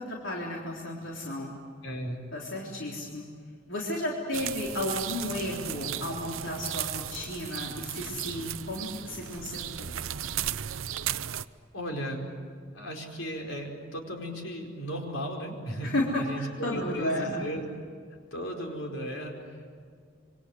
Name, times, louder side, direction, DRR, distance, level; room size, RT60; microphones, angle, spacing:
voice 1, 0.0-1.5 2.3-3.2 3.7-10.0 15.8-17.4, left 1 dB, 65° left, -3 dB, 3.8 m, -33 dB
voice 2, 1.8-2.2 11.7-12.2 12.7-17.6 18.3-19.7, equal, 85° left, 2 dB, 5.0 m, -36 dB
sound 1, 4.3-11.5, right 10 dB, 80° right, 0.7 m, -35 dB
26.5 x 24.5 x 8.0 m, 2.1 s
head